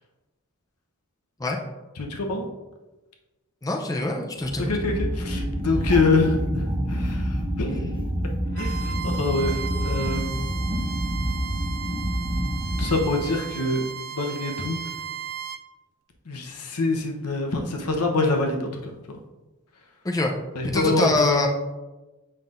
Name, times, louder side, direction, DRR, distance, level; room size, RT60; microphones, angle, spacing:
voice 1, 2.0-2.5 4.6-8.0 8.5-10.5 12.8-13.8 14.1-14.8 16.3-19.2 20.5-21.5, left 3 dB, 85° left, 3 dB, 0.9 m, -25 dB
voice 2, 3.6-4.6 20.0-20.4 20.6-21.5, left 2 dB, 15° left, 2 dB, 0.5 m, -24 dB
sound 1, 4.4-13.5, equal, 25° right, 0.7 m, -28 dB
Bowed string instrument, 8.5-15.6, right 8 dB, 45° right, 0.4 m, -36 dB
7.6 x 5.5 x 2.5 m, 1.1 s
head